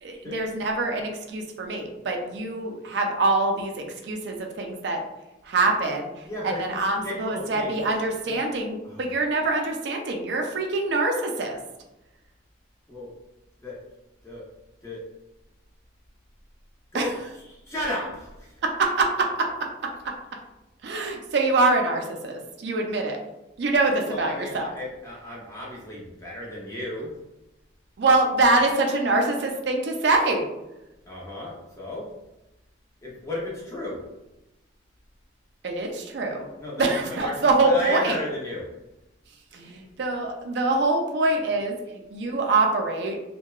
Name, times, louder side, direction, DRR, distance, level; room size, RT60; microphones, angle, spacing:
voice 1, 0.0-5.0 5.4-6.1 6.4-11.6 16.9-17.1 18.6-20.1 20.8-23.2 23.6-24.7 28.0-30.4 35.6-36.5 36.8-38.2 39.5-43.2, right 2 dB, 60° right, 2 dB, 0.4 m, -24 dB
voice 2, 6.2-7.9 8.2-8.4 8.8-9.1 12.9-13.1 13.6-13.8 14.2-14.4 14.8-15.0 16.9-18.6 24.0-27.1 31.1-32.1 33.0-34.0 36.6-38.7 39.5-39.7, left 1 dB, 15° left, -5 dB, 0.6 m, -34 dB
2.8 x 2.2 x 2.3 m, 0.96 s
head